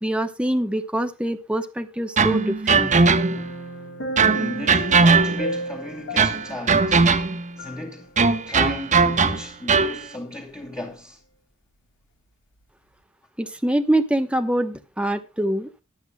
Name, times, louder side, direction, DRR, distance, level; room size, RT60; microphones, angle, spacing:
voice 1, 0.0-2.9 13.4-15.8, right 1 dB, 5° right, 0.9 m, -24 dB
sound 1, 2.2-3.6 4.2-5.6 6.2-7.5 8.2-10.0, right 4 dB, 35° right, 1.2 m, -19 dB
sound 2, 2.7-8.2 8.5-8.7, equal, 60° left, 2.2 m, -35 dB
voice 2, 4.2-7.1 7.6-8.1 8.5-11.2, left 1 dB, 15° left, 2.1 m, -35 dB
22.0 x 8.1 x 2.2 m
head